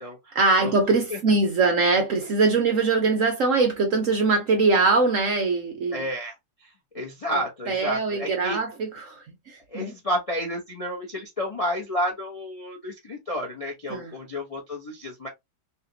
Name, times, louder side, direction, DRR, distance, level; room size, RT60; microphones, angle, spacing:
voice 1, 0.3-6.0 7.3-9.9 13.9-14.1, right 3 dB, 60° right, 0.9 m, -22 dB
voice 2, 5.9-6.3 6.9-8.6 9.7-15.3, equal, 45° left, 0.4 m, -31 dB
3.2 x 2.9 x 2.7 m
omnidirectional pair, 2.0 m